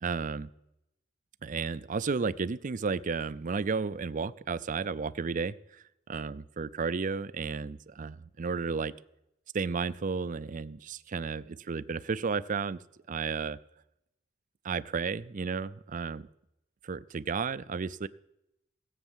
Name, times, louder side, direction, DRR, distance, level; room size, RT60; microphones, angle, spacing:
voice 1, 0.0-0.5 1.4-5.5 6.1-8.9 9.5-12.8 13.1-13.6 14.6-16.3 16.8-18.1, right 5 dB, 40° right, 17 dB, 0.5 m, -33 dB
17.0 x 8.1 x 7.3 m, 0.86 s
head